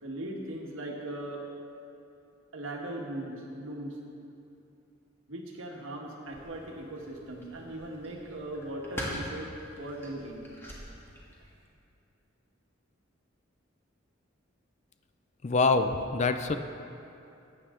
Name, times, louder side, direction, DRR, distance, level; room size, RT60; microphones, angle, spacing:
voice 1, 0.0-1.4 2.5-4.0 5.3-9.5 9.8-10.5, right 1 dB, 80° right, 0 dB, 1.6 m, -39 dB
sound 1, 6.3-11.6, equal, 10° left, 1.7 m, -43 dB
voice 2, 15.4-16.6, left 3 dB, 35° left, 8 dB, 0.4 m, -25 dB
14.5 x 8.7 x 3.8 m, 2.7 s
head